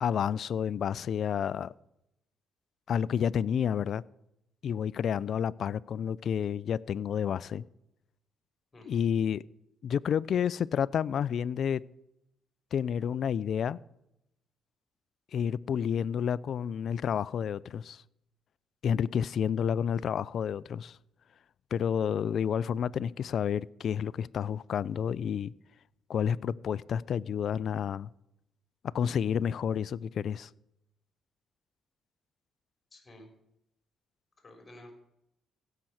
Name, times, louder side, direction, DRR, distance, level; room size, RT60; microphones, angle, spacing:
voice 1, 0.0-1.7 2.9-4.0 4.6-7.6 8.9-9.4 9.8-11.8 12.7-13.8 15.3-18.0 18.8-21.0 21.7-25.5 26.1-28.1 28.8-30.5, left 8 dB, 60° left, 0.4 m, -30 dB
voice 2, 32.9-33.3 34.4-34.9, left 1 dB, 25° left, 4.2 m, -51 dB
16.0 x 5.9 x 7.8 m
cardioid pair, 90°, 0 cm